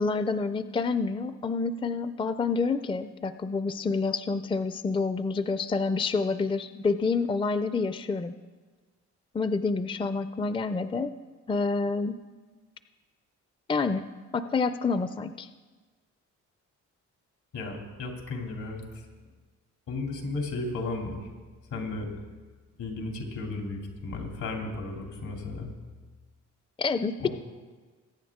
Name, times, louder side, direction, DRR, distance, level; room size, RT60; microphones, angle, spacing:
voice 1, 0.0-8.3 9.3-11.1 11.5-12.2 13.7-14.0 14.3-15.5 26.8-27.3, left 4 dB, 15° left, 11 dB, 0.4 m, -28 dB
voice 2, 17.5-19.0 19.9-21.3 21.7-22.1 22.8-25.7 27.2-27.3, left 3 dB, 80° left, 1 dB, 2.9 m, -34 dB
21.5 x 9.1 x 3.6 m, 1.4 s
cardioid pair, 95°, 30 cm